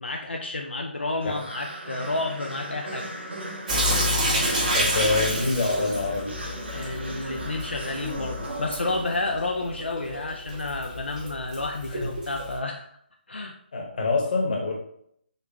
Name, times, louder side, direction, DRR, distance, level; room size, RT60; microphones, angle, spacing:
voice 1, 0.0-3.1 6.7-12.9 13.3-13.5, left 2 dB, 80° left, 2 dB, 0.5 m, -30 dB
sound 1, 1.2-9.7, right 1 dB, 80° right, 0.9 m, -37 dB
Sink (filling or washing) / Drip, 3.7-12.6, equal, 45° right, 1.2 m, -29 dB
voice 2, 4.7-6.4 13.7-14.8, left 3 dB, 50° left, 1 dB, 1.1 m, -25 dB
3.9 x 3.2 x 2.8 m, 0.67 s
figure-of-eight pair, 145°, 6 cm